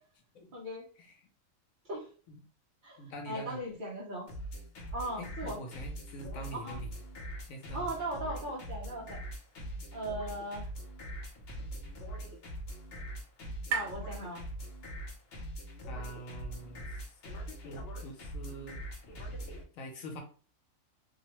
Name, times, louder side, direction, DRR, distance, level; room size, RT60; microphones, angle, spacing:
voice 1, 0.5-0.9 1.9-2.0 2.8-4.3 4.9-5.6 6.5-6.8 7.7-9.2 9.9-10.7 13.7-14.4, right 1 dB, 50° right, -4 dB, 0.7 m, -38 dB
voice 2, 3.0-3.6 5.2-6.9 7.4-7.9 15.9-16.9 17.6-18.8 19.7-20.2, equal, 80° left, 3 dB, 1.1 m, -44 dB
sound 1, 4.3-19.6, right 1 dB, 60° left, 0.7 m, -42 dB
sound 2, 11.3-15.1, right 7 dB, 85° right, 1.0 m, -42 dB
2.7 x 2.1 x 2.9 m, 0.40 s
omnidirectional pair, 1.4 m